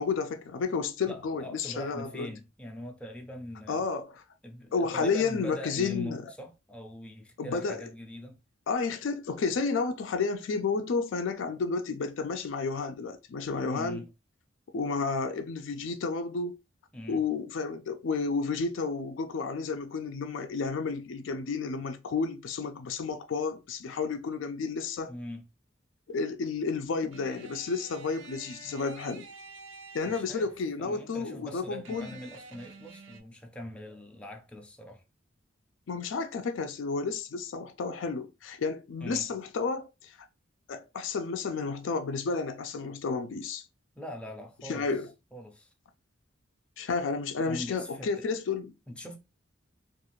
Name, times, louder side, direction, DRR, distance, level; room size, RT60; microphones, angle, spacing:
voice 1, 0.0-2.3 3.7-4.2 4.7-6.2 7.4-7.8 8.7-14.0 14.7-16.6 17.1-25.1 26.1-29.3 29.9-32.1 35.9-40.1 40.7-43.6 44.7-45.1 46.8-48.7, left 4 dB, 75° left, 0.4 m, -31 dB
voice 2, 1.1-3.9 4.4-8.4 13.7-14.1 16.9-17.2 25.1-25.4 30.0-30.5 30.8-35.0 39.0-39.3 44.0-44.9 45.3-45.7 47.4-48.3 48.9-49.2, left 1 dB, 5° left, 0.5 m, -42 dB
sound 1, 27.1-30.6 31.8-33.2, right 4 dB, 70° right, 0.5 m, -49 dB
2.4 x 2.3 x 3.0 m
head